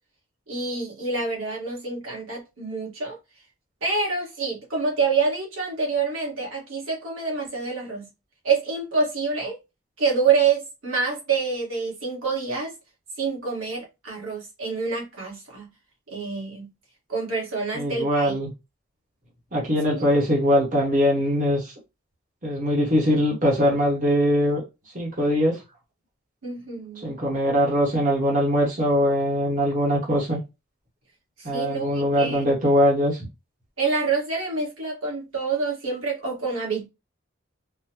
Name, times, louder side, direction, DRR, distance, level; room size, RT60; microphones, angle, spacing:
voice 1, 0.5-3.2 3.8-8.1 8.4-9.5 10.0-12.7 13.2-15.7 16.1-16.7 17.1-18.3 26.4-27.1 31.5-32.4 33.8-36.9, right 4 dB, 80° right, 1.5 m, -27 dB
voice 2, 17.7-18.5 19.5-21.7 22.4-24.6 24.9-25.6 27.0-30.4 31.4-33.3, equal, 40° right, 1.0 m, -22 dB
3.7 x 2.1 x 2.9 m
head